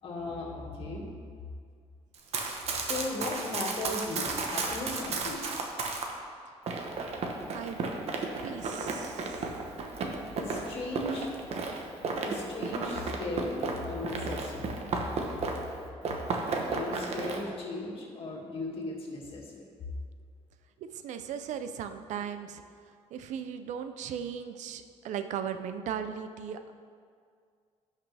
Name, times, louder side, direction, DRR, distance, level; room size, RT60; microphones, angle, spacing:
voice 1, 0.0-1.1 2.8-5.7 10.3-11.3 12.2-14.7 16.7-19.7, left 2 dB, 50° left, -3 dB, 2.2 m, -37 dB
Run, 2.1-6.1 6.7-15.7 16.0-17.4, right 3 dB, 60° right, 1.1 m, -34 dB
voice 2, 7.5-7.8 8.4-9.5 16.5-17.0 20.8-22.6 23.1-26.7, right 8 dB, 80° right, 9 dB, 0.6 m, -38 dB
16.5 x 5.7 x 3.4 m, 2.2 s
cardioid pair, 135°, 12 cm